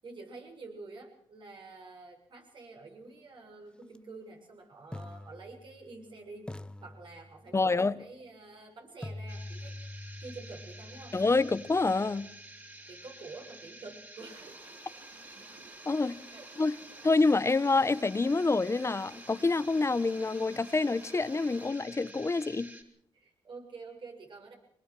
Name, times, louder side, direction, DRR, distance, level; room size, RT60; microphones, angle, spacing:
voice 1, 0.0-6.5 6.8-9.8 10.2-11.2 12.9-14.5 16.3-16.4 23.1-24.5, right 3 dB, 55° right, 6.7 m, -48 dB
sound 1, 3.8-4.0 4.9-6.1 6.5-7.7 9.0-12.9, left 1 dB, 10° left, 1.0 m, -45 dB
voice 2, 7.5-8.0 11.1-12.3 15.8-16.2 16.6-16.8 17.0-22.7, left 3 dB, 30° left, 1.2 m, -27 dB
sound 2, 9.3-22.8, right 1 dB, 20° right, 4.5 m, -50 dB
sound 3, 14.2-21.7, right 3 dB, 80° right, 5.6 m, -55 dB
23.5 x 19.5 x 6.3 m
supercardioid pair, 55°, 10 cm